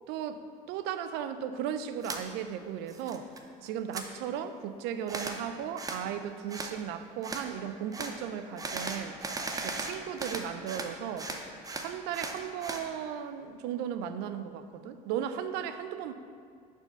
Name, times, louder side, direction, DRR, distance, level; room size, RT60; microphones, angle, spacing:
voice 1, 0.1-3.3 3.6-9.2 9.6-11.3 11.8-16.1, right 9 dB, 70° right, 10 dB, 0.4 m, -36 dB
sound 1, 2.0-2.2 2.6-3.4 3.7-4.1 5.1-5.4 5.8-6.0 6.5-6.7 7.2-7.5 7.9-8.1 8.6-10.9 11.2-12.8, right 3 dB, 20° right, 0.6 m, -37 dB
4.4 x 4.3 x 5.6 m, 2.2 s
supercardioid pair, 80°, 18 cm